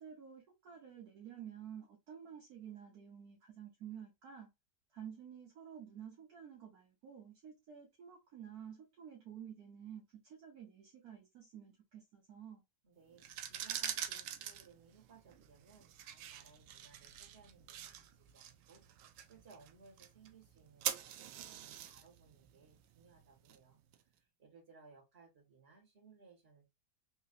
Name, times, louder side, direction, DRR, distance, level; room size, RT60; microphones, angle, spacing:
voice 1, 0.0-4.5 4.9-12.6, right 8 dB, 65° right, 1.4 m, -51 dB
voice 2, 12.8-23.8 24.2-26.7, right 5 dB, 35° right, 1.9 m, -63 dB
sound 1, 13.1-24.0, right 10 dB, 90° right, 1.2 m, -45 dB
3.8 x 3.0 x 2.5 m
omnidirectional pair, 1.9 m